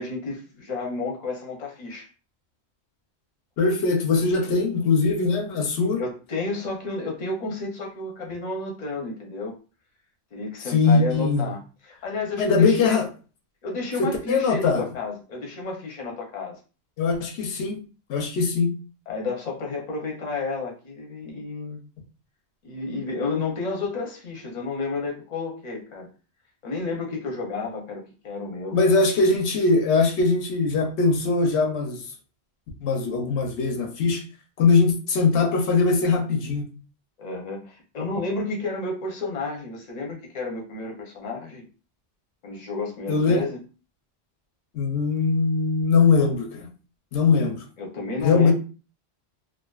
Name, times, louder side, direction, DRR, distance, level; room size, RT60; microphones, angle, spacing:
voice 1, 0.0-2.1 6.0-9.6 10.3-13.0 13.6-16.6 19.1-21.8 22.6-26.1 26.6-28.8 37.2-41.6 42.4-43.6 47.8-48.5, left 3 dB, 45° left, 0.7 m, -31 dB
voice 2, 3.6-6.0 10.7-11.5 12.4-13.1 14.0-14.8 17.0-17.8 18.1-18.7 28.7-32.0 32.8-34.2 34.6-36.7 43.1-43.5 44.7-46.7 47.1-47.6 48.2-48.5, left 4 dB, 85° left, 0.9 m, -21 dB
2.4 x 2.4 x 2.3 m
omnidirectional pair, 1.1 m